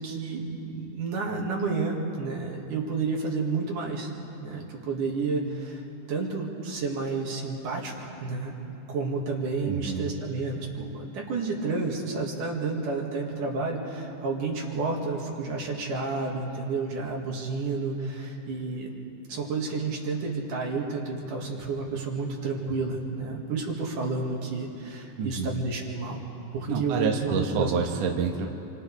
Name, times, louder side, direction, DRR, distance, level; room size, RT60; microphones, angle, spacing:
voice 1, 0.0-4.1 4.4-5.8 6.1-8.5 8.9-18.9 19.3-26.2 26.5-27.7, right 4 dB, 80° right, -1 dB, 3.6 m, -30 dB
voice 2, 9.7-10.0 25.2-25.5 26.7-28.5, right 5 dB, 60° right, 1 dB, 2.2 m, -28 dB
28.0 x 26.0 x 3.5 m, 2.9 s
omnidirectional pair, 3.7 m